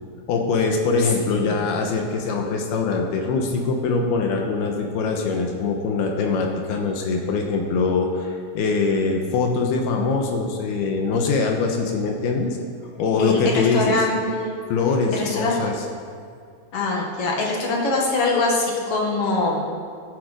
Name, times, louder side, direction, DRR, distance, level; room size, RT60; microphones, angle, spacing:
voice 1, 0.3-12.6 13.0-14.0 14.7-15.7, left 4 dB, 75° left, 2 dB, 2.9 m, -23 dB
voice 2, 1.0-1.7 13.2-14.5 15.1-15.7 16.7-19.6, left 2 dB, 50° left, -1 dB, 1.9 m, -23 dB
14.5 x 8.7 x 5.0 m, 2.3 s
omnidirectional pair, 4.7 m